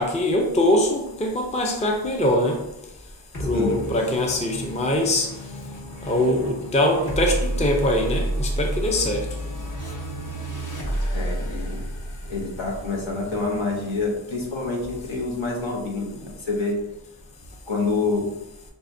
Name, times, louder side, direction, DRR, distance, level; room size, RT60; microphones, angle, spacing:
voice 1, 0.0-2.6 3.4-5.3 6.1-9.3, left 1 dB, 15° left, 2 dB, 0.5 m, -22 dB
sound 1, 3.3-14.1, right 1 dB, 40° left, 1.2 m, -31 dB
voice 2, 11.1-11.8 12.3-16.8 17.7-18.3, left 3 dB, 65° left, -1 dB, 1.1 m, -27 dB
5.5 x 2.4 x 2.6 m, 0.88 s
wide cardioid pair, 65°, 49 cm